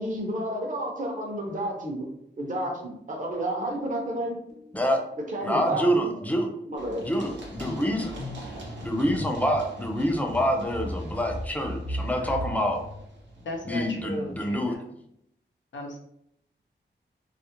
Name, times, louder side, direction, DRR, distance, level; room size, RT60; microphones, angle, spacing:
voice 1, 0.0-2.1 2.4-4.4 5.3-6.1 6.7-7.0, right 1 dB, 45° right, 0 dB, 0.7 m, -31 dB
sound 1, 4.5-4.8 5.1-13.9, left 1 dB, 40° left, 0.7 m, -39 dB
voice 2, 5.4-6.5 7.0-8.1 8.8-12.8 13.7-14.7, equal, 10° left, 2 dB, 0.5 m, -26 dB
Run, 6.8-14.4, right 1 dB, 85° right, 0.6 m, -44 dB
voice 3, 13.4-14.9 15.7-16.0, left 1 dB, 85° left, 0 dB, 0.6 m, -36 dB
2.4 x 2.0 x 2.8 m, 0.75 s
cardioid pair, 60°, 19 cm